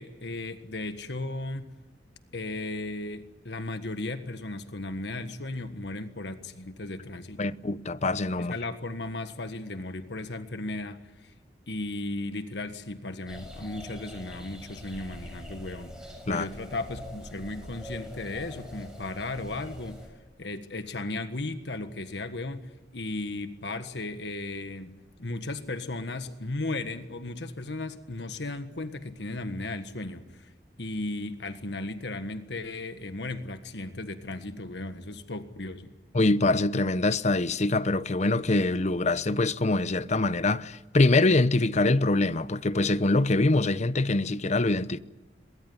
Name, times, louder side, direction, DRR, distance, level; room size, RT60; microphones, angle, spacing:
voice 1, 0.0-1.7 2.3-7.6 8.4-11.3 11.7-15.9 16.3-20.0 20.4-30.5 30.8-35.9, left 2 dB, 75° left, 1.6 m, -36 dB
voice 2, 7.4-8.5 16.3-16.5 36.1-45.0, left 2 dB, 40° left, 0.8 m, -24 dB
sound 1, 13.3-20.1, equal, 5° right, 7.0 m, -44 dB
23.0 x 21.0 x 9.7 m
head